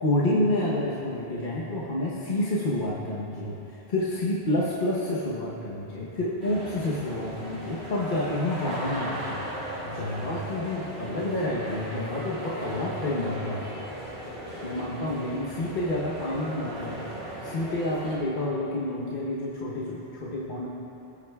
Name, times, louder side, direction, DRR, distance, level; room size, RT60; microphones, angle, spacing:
voice 1, 0.0-9.5 9.8-13.6 14.6-17.0 17.4-20.7, left 1 dB, 50° left, -6 dB, 1.2 m, -29 dB
sound 1, 6.4-18.2, equal, 85° right, 2.7 m, -37 dB
18.0 x 8.7 x 2.3 m, 3.0 s
omnidirectional pair, 1.1 m